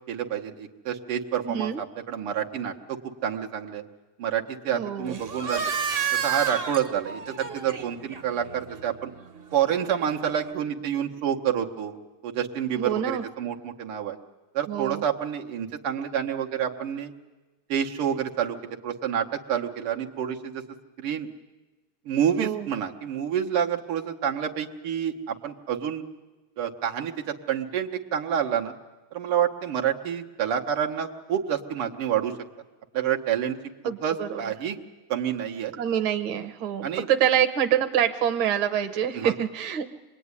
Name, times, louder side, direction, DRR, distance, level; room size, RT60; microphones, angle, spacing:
voice 1, 0.1-3.0 3.2-3.8 4.2-5.7 6.1-9.1 9.5-11.9 12.2-14.2 14.5-17.1 17.7-20.6 21.0-21.3 22.1-26.0 26.6-28.7 29.1-32.3 32.9-33.6 34.0-34.8 35.1-35.7 36.8-37.1 39.1-39.3, right 9 dB, 90° right, 1 dB, 2.3 m, -28 dB
voice 2, 1.4-1.8 4.7-5.2 12.8-13.2 14.7-15.0 22.4-22.7 33.8-34.5 35.8-39.9, right 9 dB, 70° right, 7 dB, 1.8 m, -26 dB
sound 1, 5.1-10.5, right 7 dB, 45° right, 0.8 m, -32 dB
26.5 x 20.5 x 9.7 m, 1.2 s
omnidirectional pair, 2.4 m